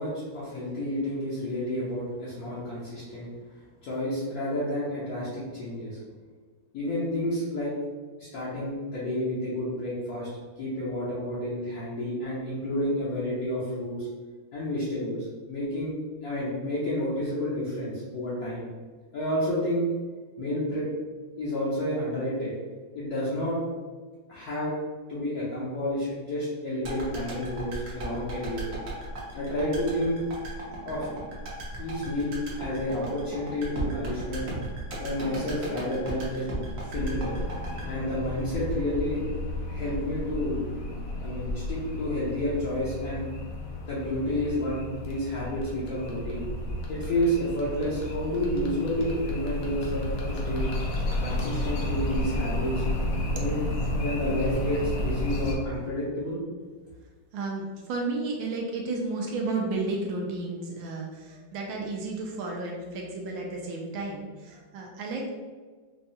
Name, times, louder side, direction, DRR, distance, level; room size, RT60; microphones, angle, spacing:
voice 1, 0.0-3.3 3.8-6.0 6.7-7.7 8.2-10.3 10.6-14.1 14.5-16.0 16.2-18.6 19.1-19.9 20.4-20.8 21.4-22.5 22.9-23.6 24.3-24.7 25.1-28.6 29.3-30.2 30.9-31.1 31.8-34.5 35.0-36.5 36.8-37.3 37.8-39.2 39.7-40.6 41.2-43.3 43.8-46.4 46.9-50.7 51.2-52.8 53.2-53.6 54.0-56.4, left 1 dB, 60° left, -9 dB, 1.1 m, -30 dB
sound 1, 26.8-39.0 39.3-39.4, right 1 dB, 55° right, 1.0 m, -36 dB
sound 2, 36.9-55.5, left 1 dB, 80° left, 0.7 m, -32 dB
voice 2, 57.3-65.3, right 3 dB, 80° right, 0 dB, 1.3 m, -32 dB
4.7 x 2.3 x 2.7 m, 1.4 s
omnidirectional pair, 2.2 m